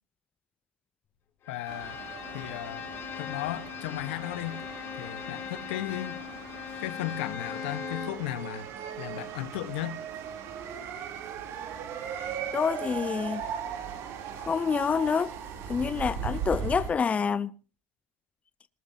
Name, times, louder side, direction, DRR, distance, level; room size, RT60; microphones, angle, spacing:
voice 1, 1.5-2.0 2.3-2.9 3.2-4.6 5.0-6.2 6.8-8.7 9.0-10.0, left 13 dB, 75° left, 1.3 m, -35 dB
Bowed string instrument, 1.5-8.3, left 9 dB, 45° left, 5.2 m, -39 dB
sound 1, 1.7-16.9, right 7 dB, 55° right, 3.3 m, -38 dB
voice 2, 12.5-13.4 14.4-15.3 15.7-17.5, left 6 dB, 25° left, 0.7 m, -27 dB
20.0 x 19.0 x 2.8 m
hypercardioid pair, 90°, 6 cm